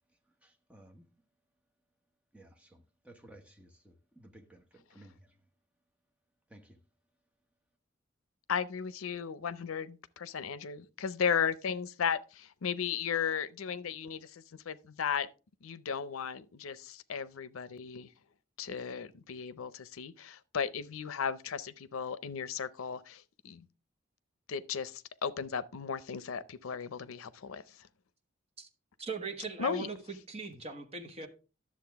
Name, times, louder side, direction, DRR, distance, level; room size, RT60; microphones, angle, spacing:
voice 1, 0.1-1.1 2.3-5.4 6.5-6.8, right 1 dB, 5° right, 1.0 m, -57 dB
voice 2, 8.5-15.3 15.6-18.1 18.6-23.7 24.5-27.9 29.6-29.9, left 7 dB, 90° left, 0.6 m, -35 dB
voice 3, 29.0-31.3, right 4 dB, 30° right, 1.1 m, -40 dB
10.5 x 7.3 x 3.4 m
head